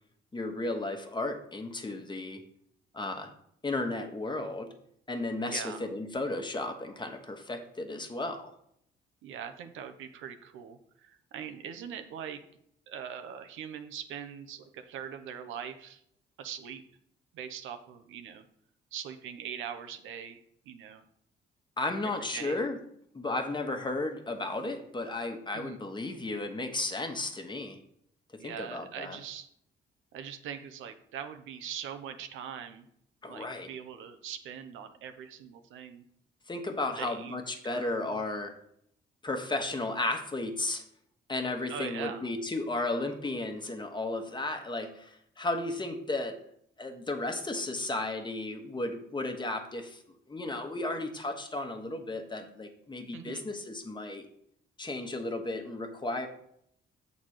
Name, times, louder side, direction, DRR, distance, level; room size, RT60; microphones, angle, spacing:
voice 1, 0.3-2.4 2.9-3.3 3.6-4.7 5.1-8.5 21.8-22.8 23.1-27.8 28.3-29.2 33.2-33.7 36.5-38.5 39.2-40.8 41.3-46.4 46.8-50.0 50.3-54.2 54.8-56.3, left 2 dB, 25° left, 5 dB, 1.2 m, -34 dB
voice 2, 5.5-5.9 9.2-12.4 12.9-16.0 16.4-16.8 17.3-18.4 18.9-21.0 22.0-22.6 25.5-25.8 28.4-29.5 30.1-32.9 33.3-36.0 37.0-37.4 37.6-38.2 41.7-42.3 53.1-53.4, right 8 dB, 85° right, 8 dB, 0.8 m, -42 dB
7.2 x 4.1 x 6.4 m, 0.69 s
cardioid pair, 90°, 20 cm